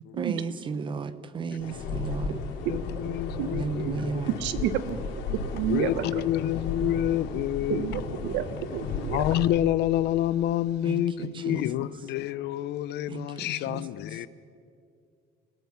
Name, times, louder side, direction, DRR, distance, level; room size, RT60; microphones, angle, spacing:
voice 1, 0.1-2.4 3.5-4.3 10.8-11.9 13.1-13.8 14.1-14.2, right 5 dB, 25° right, 0.9 m, -34 dB
sound 1, 1.6-9.4, left 4 dB, 85° left, 3.6 m, -34 dB
voice 2, 2.7-3.9 5.7-8.0 9.1-14.3, left 13 dB, 65° left, 0.7 m, -28 dB
voice 3, 4.4-5.0 5.3-6.3 7.7-9.3, right 11 dB, 80° right, 1.3 m, -30 dB
29.5 x 17.5 x 5.9 m
cardioid pair, 160°, 18 cm